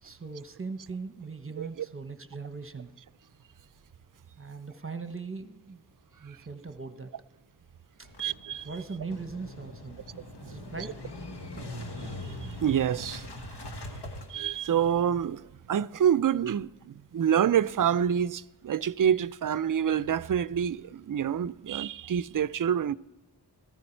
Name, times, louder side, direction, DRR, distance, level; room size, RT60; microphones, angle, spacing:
voice 1, 0.0-2.9 4.4-5.8 6.2-7.1 8.0-8.1 8.6-11.0, right 4 dB, 30° right, 1.0 m, -40 dB
Motorcycle / Engine starting, 8.0-15.3, left 1 dB, 75° left, 1.6 m, -42 dB
voice 2, 8.2-8.7 10.8-10.9 12.0-12.3 12.6-13.3 13.9-14.0 14.3-23.0, right 9 dB, 55° right, 0.4 m, -27 dB
15.0 x 14.0 x 4.5 m
wide cardioid pair, 55°, 40 cm